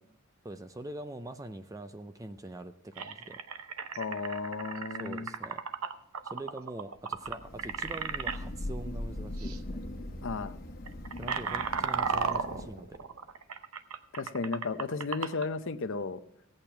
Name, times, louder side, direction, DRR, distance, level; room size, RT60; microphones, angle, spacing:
voice 1, 0.4-3.4 5.0-5.6 6.2-9.8 11.2-13.0, right 1 dB, 15° right, 10 dB, 0.5 m, -43 dB
sound 1, 2.4-2.5 2.9-8.4 9.4-9.6 9.9-10.2 10.7-15.5, right 6 dB, 80° right, 0.8 m, -35 dB
voice 2, 4.0-5.3 10.2-10.5 14.1-16.2, left 4 dB, 60° left, 10 dB, 0.7 m, -34 dB
Thunder / Rain, 7.3-13.0, left 1 dB, 45° left, 1.2 m, -40 dB
16.5 x 8.8 x 4.5 m, 0.77 s
head